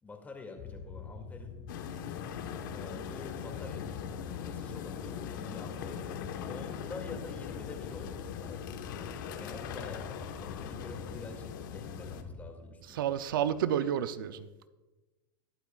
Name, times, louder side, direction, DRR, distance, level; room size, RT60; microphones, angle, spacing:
voice 1, 0.0-1.6 2.7-6.0 6.5-8.7 9.4-13.5, left 3 dB, 15° left, 3 dB, 2.3 m, -47 dB
sound 1, 0.6-12.5, left 5 dB, 55° left, 1.7 m, -45 dB
sound 2, 1.7-12.2, left 8 dB, 75° left, 1.2 m, -41 dB
voice 2, 12.9-14.7, right 9 dB, 85° right, 13 dB, 0.6 m, -31 dB
21.5 x 8.1 x 2.4 m, 1.2 s
supercardioid pair, 125°, 11 cm